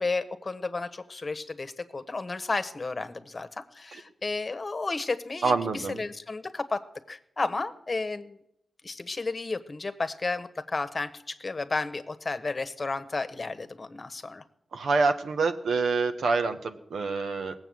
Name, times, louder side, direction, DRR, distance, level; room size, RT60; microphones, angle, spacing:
voice 1, 0.0-8.4 8.8-14.4, left 3 dB, 45° left, 11 dB, 1.2 m, -32 dB
voice 2, 5.4-6.0 14.7-17.5, right 4 dB, 80° right, 7 dB, 1.2 m, -26 dB
18.0 x 7.8 x 7.7 m, 0.77 s
cardioid pair, 55°, 0 cm